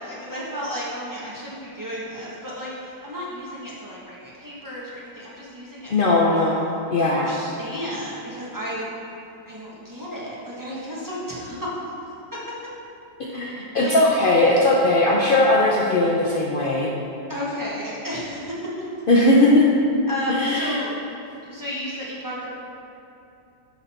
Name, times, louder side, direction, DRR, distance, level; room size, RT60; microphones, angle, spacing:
voice 1, 0.0-6.4 7.0-8.9 9.5-11.8 12.3-12.4 13.8-13.9 17.3-18.6 20.1-20.9 21.4-22.5, equal, 10° right, -8 dB, 1.3 m, -33 dB
voice 2, 5.9-7.3 13.2-16.9 19.1-19.7 20.3-20.8, left 2 dB, 75° left, -4 dB, 0.5 m, -19 dB
11.5 x 4.0 x 4.4 m, 2.7 s
omnidirectional pair, 1.9 m